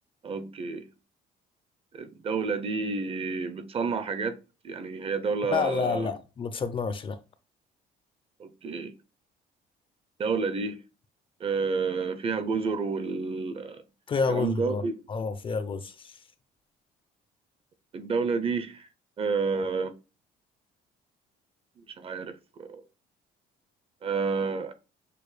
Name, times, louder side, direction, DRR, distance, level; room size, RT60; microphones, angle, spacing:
voice 1, 0.2-0.9 1.9-4.4 4.6-6.1 8.4-8.9 10.2-10.8 11.4-13.8 14.3-14.9 17.9-18.9 19.2-19.9 22.0-22.8 24.0-24.7, right 4 dB, 35° right, 0.5 m, -30 dB
voice 2, 5.5-7.2 14.1-14.8 15.1-16.2, left 5 dB, 30° left, 0.4 m, -29 dB
6.7 x 2.2 x 3.2 m
cardioid pair, 110°, 17 cm